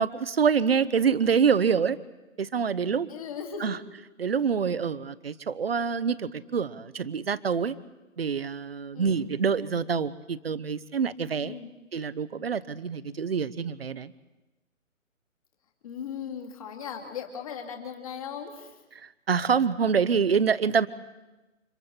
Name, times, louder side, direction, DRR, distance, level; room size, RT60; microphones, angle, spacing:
voice 1, 0.0-2.0 2.4-3.1 3.6-3.8 4.2-7.8 8.2-11.6 11.9-14.1 19.0-20.9, right 6 dB, 45° right, 15 dB, 0.9 m, -26 dB
voice 2, 3.1-3.8 8.9-9.3 11.4-11.7 15.8-18.8, left 7 dB, 25° left, 2 dB, 2.4 m, -38 dB
29.5 x 27.0 x 4.4 m, 1.1 s
hypercardioid pair, 170°, 41 cm